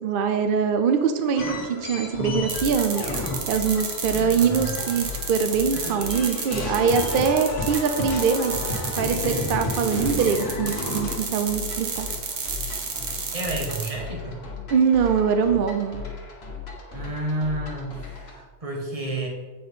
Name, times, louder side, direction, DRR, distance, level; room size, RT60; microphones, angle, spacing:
voice 1, 0.0-3.0 3.5-8.5 9.0-12.1 14.7-16.0, right 6 dB, 60° right, 7 dB, 0.6 m, -23 dB
sound 1, 1.4-5.4 5.7-11.1, left 1 dB, 80° left, 1.7 m, -32 dB
sound 2, 2.5-18.4, left 5 dB, 60° left, 1.5 m, -38 dB
sound 3, 2.5-13.9, right 5 dB, 90° right, 1.5 m, -31 dB
voice 2, 4.4-4.8 13.3-14.4 16.9-19.3, right 2 dB, 30° right, 0 dB, 1.4 m, -30 dB
8.5 x 4.2 x 5.3 m, 1.4 s
omnidirectional pair, 1.2 m